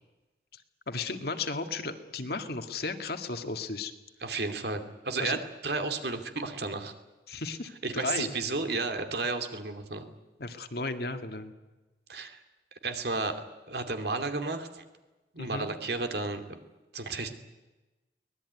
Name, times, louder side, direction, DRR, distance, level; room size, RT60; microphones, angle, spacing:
voice 1, 0.9-3.9 5.2-5.4 7.3-8.3 10.4-11.5 15.4-15.7, left 3 dB, 55° left, 7 dB, 2.0 m, -34 dB
voice 2, 4.2-6.9 7.8-10.0 12.1-12.4 12.8-14.8 15.3-16.6 16.9-17.3, right 3 dB, 60° right, 7 dB, 2.7 m, -33 dB
24.0 x 19.5 x 9.6 m, 1.1 s
head